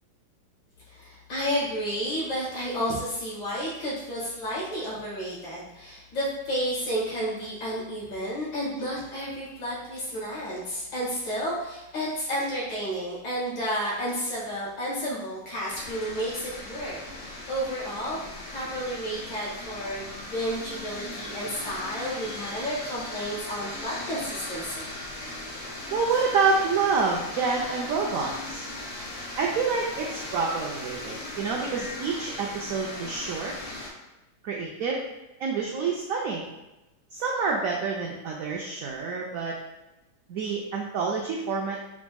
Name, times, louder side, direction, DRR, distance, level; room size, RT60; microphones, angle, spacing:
voice 1, 0.9-24.9, equal, 80° left, -8 dB, 2.4 m, -31 dB
sound 1, 15.7-33.9, left 1 dB, 55° left, 0.9 m, -38 dB
voice 2, 25.9-28.6 29.4-33.5 34.4-35.0 35.4-36.5 37.1-39.5 40.3-41.8, right 4 dB, 85° right, -2 dB, 0.7 m, -27 dB
4.9 x 3.5 x 2.2 m, 0.99 s
omnidirectional pair, 2.0 m